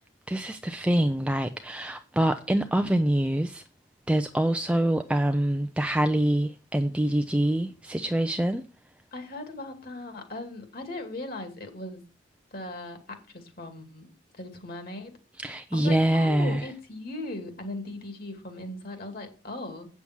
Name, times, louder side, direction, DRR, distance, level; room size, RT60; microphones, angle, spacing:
voice 1, 0.3-3.6 4.1-8.7 15.4-16.6, right 1 dB, 5° right, 0.4 m, -25 dB
voice 2, 9.1-12.0 12.5-14.1 14.4-15.1 15.7-19.9, left 2 dB, 50° left, 2.4 m, -38 dB
8.5 x 7.0 x 6.1 m
head